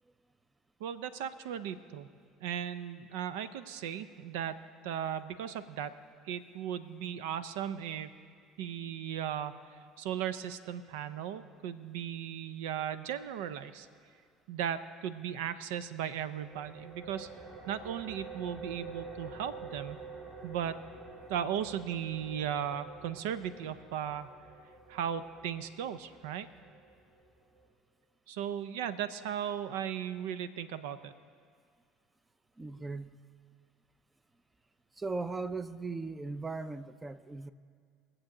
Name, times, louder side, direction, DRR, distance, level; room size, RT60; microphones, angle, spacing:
voice 1, 0.8-2.1 2.4-4.6 4.8-6.0 6.3-8.1 8.6-13.9 14.5-17.3 17.7-20.0 20.4-20.8 21.3-24.3 24.9-26.5 28.3-31.1, right 9 dB, 80° right, 13 dB, 0.6 m, -37 dB
sound 1, 16.3-27.7, right 4 dB, 35° right, 3.6 m, -48 dB
voice 2, 32.6-33.2 34.9-37.5, right 3 dB, 15° right, 13 dB, 0.6 m, -38 dB
22.0 x 7.7 x 3.8 m, 2.2 s
hypercardioid pair, 80°, 0 cm